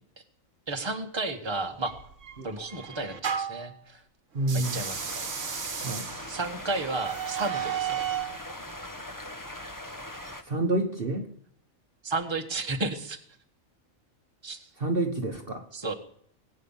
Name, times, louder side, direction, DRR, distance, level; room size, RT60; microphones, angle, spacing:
voice 1, 0.7-2.0 2.4-4.0 4.5-5.3 6.3-8.1 12.0-13.2 14.4-14.7 15.7-15.9, right 3 dB, 20° right, 4 dB, 1.5 m, -32 dB
sound 1, 1.9-3.7 4.4-8.4, right 8 dB, 70° right, 1.6 m, -34 dB
voice 2, 4.3-4.8 5.8-6.1 10.4-11.3 14.8-15.7, right 2 dB, 45° right, 5 dB, 1.4 m, -28 dB
sound 2, 4.6-10.4, left 1 dB, 15° left, 1.2 m, -41 dB
20.5 x 9.1 x 7.3 m, 0.64 s
omnidirectional pair, 1.4 m